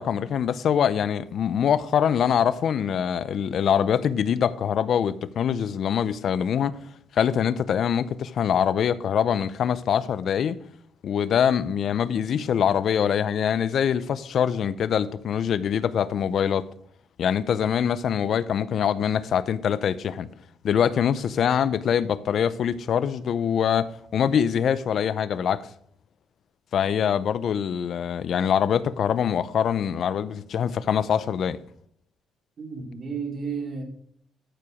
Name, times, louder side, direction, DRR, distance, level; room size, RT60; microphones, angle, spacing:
voice 1, 0.0-6.8 7.1-10.6 11.0-16.7 17.2-20.3 20.6-25.7 26.7-31.6, left 8 dB, 55° left, 0.5 m, -24 dB
voice 2, 32.6-33.8, right 5 dB, 40° right, 2.6 m, -32 dB
13.5 x 4.8 x 5.0 m
cardioid pair, 125°, 0 cm